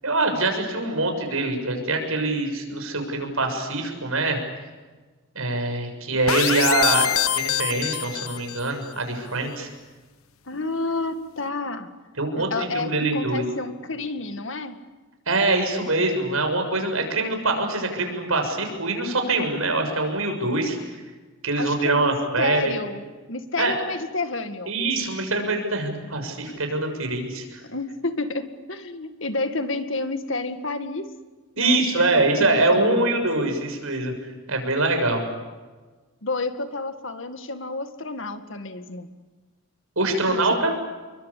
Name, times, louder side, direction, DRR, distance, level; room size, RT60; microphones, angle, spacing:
voice 1, 0.0-4.4 5.3-9.7 12.2-13.4 15.3-21.0 21.4-22.7 23.6-23.8 24.7-27.6 31.6-34.1 34.5-35.2 39.9-40.7, right 2 dB, 75° right, 5 dB, 6.9 m, -24 dB
sound 1, 6.3-8.7, left 10 dB, 80° left, 1.1 m, -24 dB
voice 2, 10.5-11.9 12.3-14.8 21.6-22.1 22.4-23.0 23.3-24.7 27.7-31.0 31.6-33.0 36.2-39.1, left 3 dB, 60° left, 8 dB, 2.0 m, -30 dB
29.5 x 23.5 x 8.5 m, 1.3 s
head